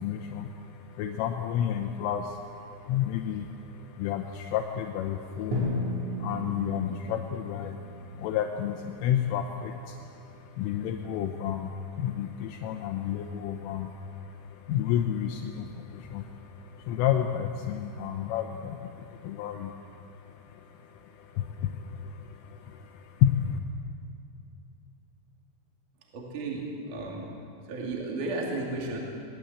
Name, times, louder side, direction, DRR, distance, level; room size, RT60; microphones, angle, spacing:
voice 1, 0.0-23.6, left 10 dB, 80° left, 4 dB, 3.5 m, -31 dB
Drum, 5.5-9.5, left 1 dB, 80° right, 6.4 m, -35 dB
voice 2, 26.1-27.4 27.6-29.0, right 2 dB, 45° right, -2 dB, 3.6 m, -34 dB
21.0 x 20.0 x 8.2 m, 2.7 s
omnidirectional pair, 5.9 m